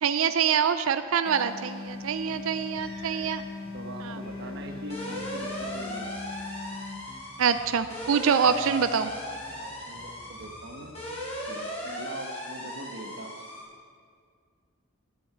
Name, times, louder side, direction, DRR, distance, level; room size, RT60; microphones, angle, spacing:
voice 1, 0.0-3.4 4.0-4.2 7.4-9.1, right 7 dB, 75° right, 11 dB, 0.4 m, -25 dB
sound 1, 1.2-7.1, left 3 dB, 75° left, 1.4 m, -40 dB
Bass guitar, 1.8-3.3 3.6-8.1 8.4-11.4, equal, 5° left, 2.8 m, -52 dB
sound 2, 2.7-3.4 3.7-13.6, equal, 30° left, 3.3 m, -38 dB
voice 2, 3.7-6.1 9.6-10.9 11.5-13.4, right 2 dB, 55° right, 5 dB, 1.1 m, -42 dB
10.0 x 7.2 x 8.9 m, 2.1 s
head